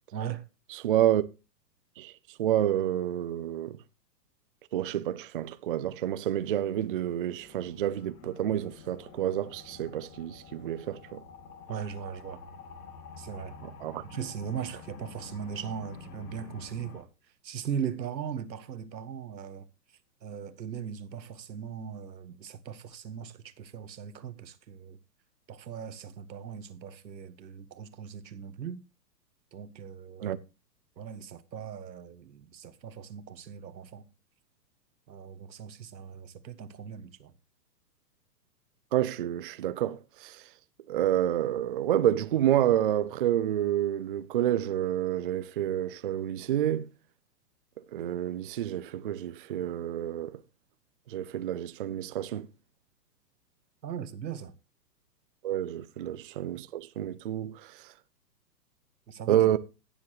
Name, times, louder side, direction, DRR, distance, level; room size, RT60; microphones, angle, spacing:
voice 1, 0.1-0.5 11.7-12.4 13.2-13.6 14.0-17.1 17.4-19.7 20.2-25.0 25.5-28.8 29.5-30.4 31.0-34.1 35.1-37.3 53.8-54.5 59.1-59.5, right 8 dB, 85° right, 1.5 m, -39 dB
voice 2, 0.7-1.3 2.0-3.8 4.7-11.2 13.8-14.0 30.2-30.4 38.9-40.5 40.9-46.9 47.9-50.4 51.1-52.5 55.4-57.9 59.3-59.6, right 11 dB, 35° right, 0.4 m, -29 dB
sound 1, 6.3-17.0, left 5 dB, 60° left, 2.5 m, -49 dB
17.0 x 7.2 x 3.0 m
hypercardioid pair, 145°, 50 cm